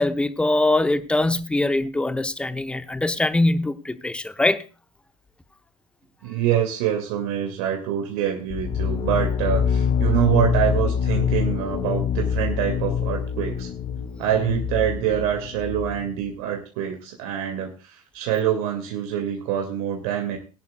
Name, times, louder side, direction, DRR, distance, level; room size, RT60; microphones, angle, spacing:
voice 1, 0.0-4.6, left 2 dB, 5° left, 0.8 m, -22 dB
voice 2, 6.2-13.7 14.2-20.4, right 10 dB, 50° right, 2.3 m, -25 dB
sound 1, 8.5-16.1, left 7 dB, 30° left, 1.1 m, -25 dB
20.5 x 11.0 x 2.4 m
figure-of-eight pair, 80°, 19 cm